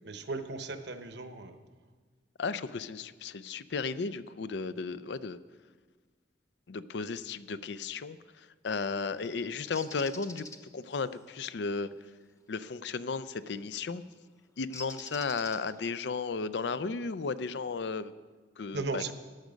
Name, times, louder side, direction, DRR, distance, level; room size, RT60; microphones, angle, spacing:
voice 1, 0.0-1.6 18.7-19.1, right 3 dB, 60° right, 8 dB, 0.9 m, -36 dB
voice 2, 2.4-5.4 6.7-10.5 10.7-11.9 12.5-14.0 14.6-18.1 18.6-19.0, left 4 dB, 65° left, 15 dB, 0.5 m, -34 dB
Bird, 9.7-10.6 13.2-13.4 14.7-15.9, left 3 dB, 15° left, 0.7 m, -45 dB
14.5 x 10.5 x 5.2 m, 1.4 s
head